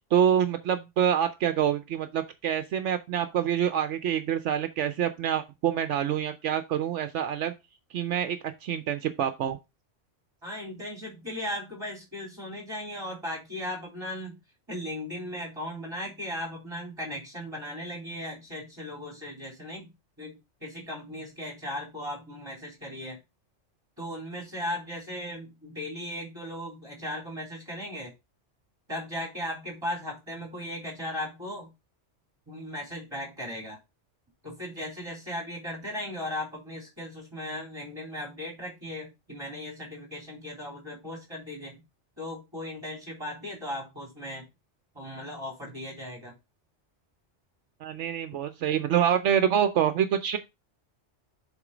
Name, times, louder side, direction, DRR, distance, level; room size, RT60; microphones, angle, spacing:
voice 1, 0.1-7.5 7.9-9.6 47.8-50.4, right 9 dB, 75° right, 1.0 m, -26 dB
voice 2, 10.4-14.4 14.7-19.9 20.2-23.2 24.0-28.1 28.9-31.7 32.5-33.8 34.4-41.8 42.2-44.5 44.9-46.4, left 1 dB, 20° right, 4.0 m, -37 dB
8.1 x 3.8 x 5.0 m
omnidirectional pair, 1.2 m